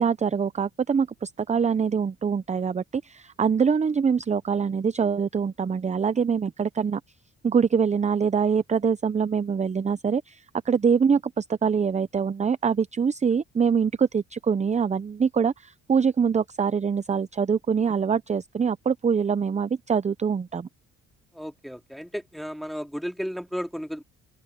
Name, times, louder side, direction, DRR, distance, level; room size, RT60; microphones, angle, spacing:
voice 1, 0.0-7.0 7.4-20.7, right 6 dB, 25° right, 0.5 m, -24 dB
voice 2, 21.3-24.0, equal, ahead, 2.2 m, -34 dB
open air
cardioid pair, 90°, 30 cm